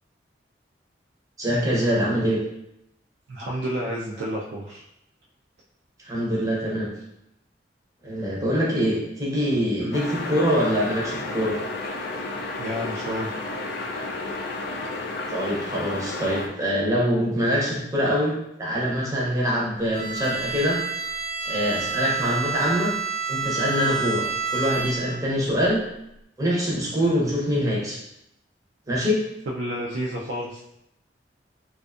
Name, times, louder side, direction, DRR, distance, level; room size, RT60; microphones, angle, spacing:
voice 1, 1.4-2.4 6.0-6.9 8.0-11.5 15.3-20.8 21.4-22.9 23.3-24.3 24.5-25.8 26.4-28.0 28.9-29.2, equal, 20° right, -5 dB, 0.7 m, -24 dB
voice 2, 3.3-4.8 9.8-10.0 12.6-13.3 29.5-30.6, equal, 80° right, -4 dB, 0.4 m, -30 dB
sound 1, 9.9-16.5, left 2 dB, 60° left, 0.3 m, -32 dB
Bowed string instrument, 19.9-25.3, right 5 dB, 25° left, 0.6 m, -29 dB
2.5 x 2.3 x 2.4 m, 0.81 s
head